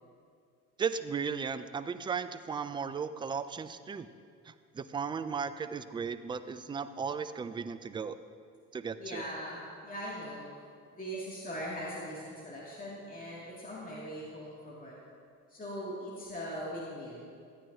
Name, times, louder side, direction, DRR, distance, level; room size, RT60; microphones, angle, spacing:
voice 1, 0.8-4.1 4.5-8.2 8.7-9.2, right 6 dB, 15° right, 12 dB, 0.3 m, -36 dB
voice 2, 9.0-10.5 10.9-15.0 15.5-17.3, equal, 20° left, -5 dB, 2.4 m, -40 dB
13.0 x 8.9 x 2.8 m, 2.2 s
hypercardioid pair, 60°, 38 cm